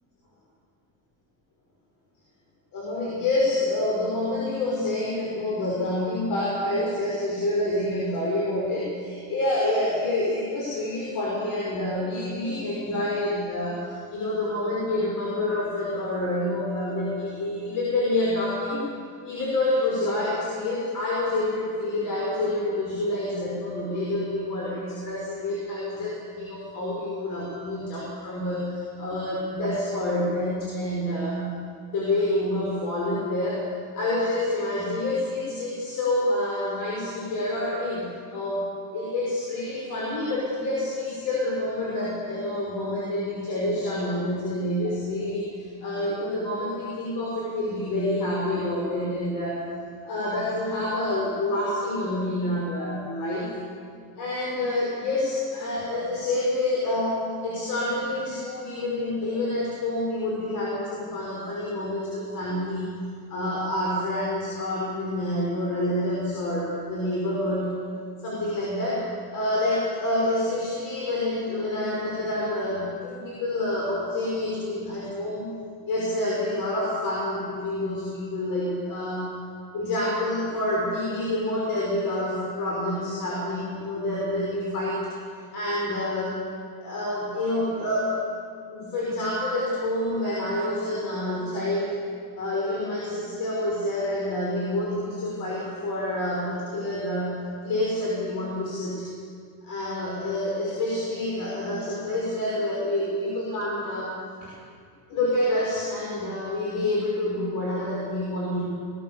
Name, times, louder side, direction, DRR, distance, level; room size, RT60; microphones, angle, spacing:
voice 1, 2.7-18.8 19.2-31.5 31.9-33.7 33.9-49.7 50.1-53.5 54.2-62.8 63.3-67.8 68.2-75.5 75.9-79.3 79.7-85.0 85.5-86.4 86.8-88.3 88.7-92.0 92.4-99.1 99.6-104.5 105.1-108.6, left 1 dB, 60° left, -4 dB, 6.2 m, -28 dB
20.5 x 18.5 x 7.3 m, 2.1 s
cardioid pair, 125°, 38 cm